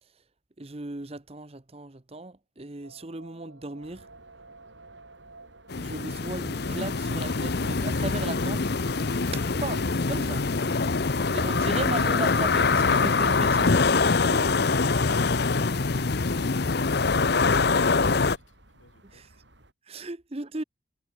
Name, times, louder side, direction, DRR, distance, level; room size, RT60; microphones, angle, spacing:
voice 1, 0.6-4.1 5.8-8.6 9.3-10.4 11.2-13.9 14.2-14.6 14.9-15.1 19.1-19.3 19.9-20.6, right 2 dB, 30° right, 0.9 m, -36 dB
sound 1, 2.8-16.5, right 3 dB, 85° right, 7.6 m, -51 dB
sound 2, 3.8-19.7, right 1 dB, 60° right, 7.0 m, -57 dB
sound 3, 5.7-18.4, left 4 dB, 55° left, 0.8 m, -24 dB
voice 2, 19.9-20.1, left 2 dB, 80° left, 7.2 m, -57 dB
head